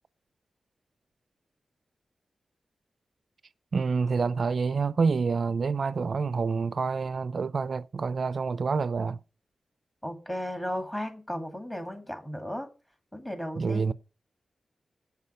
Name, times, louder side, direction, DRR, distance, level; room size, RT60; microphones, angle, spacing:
voice 1, 3.7-9.2 13.6-13.9, right 5 dB, 55° right, 0.3 m, -27 dB
voice 2, 10.0-12.7 13.1-13.9, equal, 15° left, 2.2 m, -35 dB
8.1 x 5.5 x 6.6 m
wide cardioid pair, 110°, 0 cm